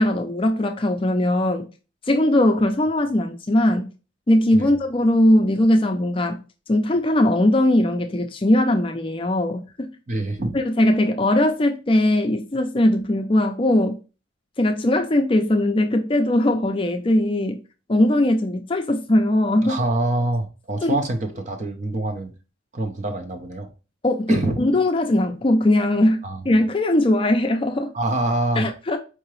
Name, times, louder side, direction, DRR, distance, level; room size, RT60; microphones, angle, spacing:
voice 1, 0.0-1.7 2.1-3.9 4.3-6.4 6.7-9.9 10.5-14.0 14.6-17.6 17.9-19.8 20.8-21.0 24.0-27.9 28.6-29.0, left 1 dB, 25° left, 0.4 m, -20 dB
voice 2, 10.1-10.6 19.6-22.3 22.7-23.7 24.3-24.6 26.2-26.4 27.9-28.7, right 2 dB, 35° right, 0.7 m, -25 dB
4.6 x 2.8 x 3.1 m
head